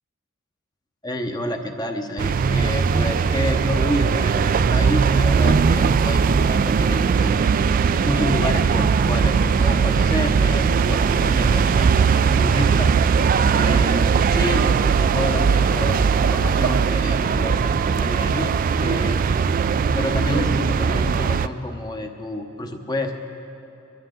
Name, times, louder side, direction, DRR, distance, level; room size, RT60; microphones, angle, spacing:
voice 1, 1.0-7.4 8.0-12.9 13.5-18.5 18.8-19.2 19.9-23.2, left 1 dB, 20° left, 4 dB, 0.9 m, -29 dB
sound 1, 2.2-21.5, right 5 dB, 45° right, 0.3 m, -19 dB
22.5 x 11.5 x 3.8 m, 2.7 s
head